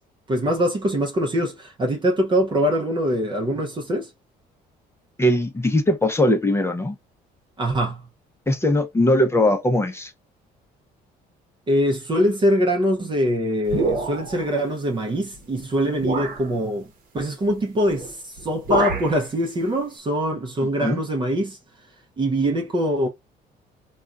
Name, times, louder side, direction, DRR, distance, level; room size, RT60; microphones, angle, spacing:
voice 1, 0.3-4.1 7.6-8.1 11.7-21.6 22.2-23.1, equal, 30° right, 0.7 m, -23 dB
voice 2, 5.2-7.0 8.5-10.1 20.8-21.0, left 1 dB, 15° left, 0.7 m, -20 dB
sound 1, 13.7-14.5 15.3-15.5 16.0-16.5 17.9-18.1 18.4-19.2, right 3 dB, 55° right, 1.0 m, -26 dB
3.6 x 2.3 x 2.4 m
cardioid pair, 110°, 17 cm